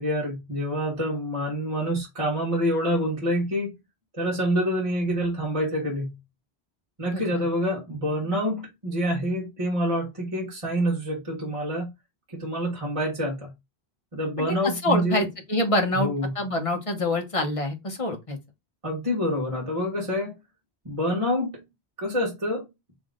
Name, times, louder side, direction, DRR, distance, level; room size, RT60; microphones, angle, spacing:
voice 1, 0.0-3.7 4.2-6.2 7.0-11.9 12.3-13.5 14.1-15.3 15.9-16.4 18.8-20.4 20.8-21.6 22.0-22.7, equal, 30° right, 1.5 m, -27 dB
voice 2, 7.1-7.4 14.4-18.4, left 1 dB, 35° left, 1.0 m, -26 dB
3.5 x 3.1 x 3.7 m
omnidirectional pair, 1.1 m